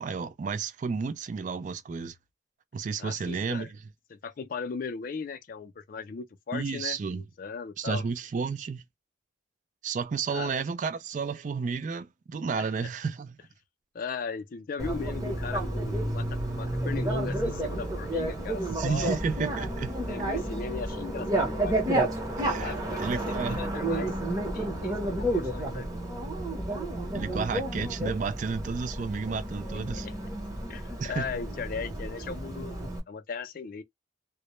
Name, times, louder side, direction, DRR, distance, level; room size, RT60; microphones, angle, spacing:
voice 1, 0.0-2.1 2.7-3.8 6.5-7.2 7.8-8.8 9.8-13.4 18.7-19.9 22.4-23.6 27.1-30.1 31.0-31.2, right 5 dB, 45° right, 0.3 m, -32 dB
voice 2, 3.0-3.7 4.1-8.0 10.3-10.5 12.6-12.9 13.9-16.2 16.5-19.2 20.1-21.8 22.6-24.1 24.5-25.9 30.0-30.1 30.7-32.8 33.1-33.8, left 5 dB, 50° left, 0.4 m, -37 dB
Bicycle, 14.8-33.0, right 1 dB, 20° right, 0.7 m, -31 dB
2.1 x 2.1 x 2.9 m
head